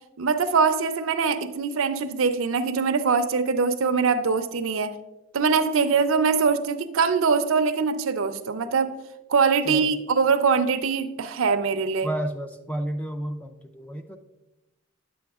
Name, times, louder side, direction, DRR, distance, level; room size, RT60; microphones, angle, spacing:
voice 1, 0.2-4.9 5.3-8.9 9.3-12.1, right 5 dB, 70° right, 10 dB, 0.5 m, -23 dB
voice 2, 9.6-10.1 12.0-14.2, right 1 dB, 5° left, 6 dB, 0.4 m, -32 dB
9.0 x 7.7 x 2.4 m, 1.0 s
head